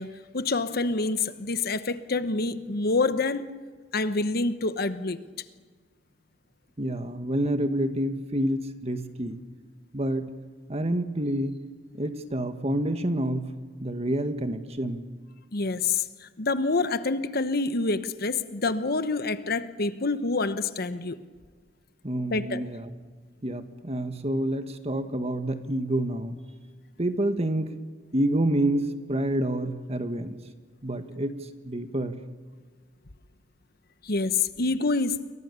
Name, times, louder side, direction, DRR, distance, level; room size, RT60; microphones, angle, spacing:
voice 1, 0.0-3.5 3.9-5.2 15.5-21.2 22.3-22.6 34.0-35.2, left 3 dB, 55° left, 1.1 m, -27 dB
voice 2, 6.8-9.4 9.9-10.3 10.7-11.6 11.9-13.5 13.8-15.0 22.0-22.9 23.4-26.4 27.0-27.8 28.1-30.3 30.8-32.2, right 1 dB, 35° right, 1.7 m, -28 dB
29.5 x 23.0 x 7.0 m
head